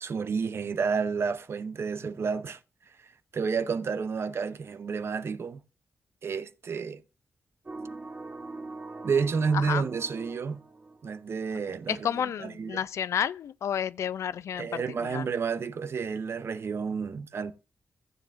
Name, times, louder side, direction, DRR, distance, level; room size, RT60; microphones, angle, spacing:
voice 1, 0.0-2.6 3.0-5.6 6.2-7.0 9.0-10.6 11.0-12.1 12.4-12.8 14.6-17.5, right 5 dB, 60° right, 0.7 m, -30 dB
sound 1, 7.7-11.5, right 3 dB, 35° right, 1.2 m, -42 dB
voice 2, 9.5-9.9 11.7-15.3, left 8 dB, 85° left, 0.4 m, -31 dB
14.5 x 7.6 x 2.6 m
cardioid pair, 65°, 5 cm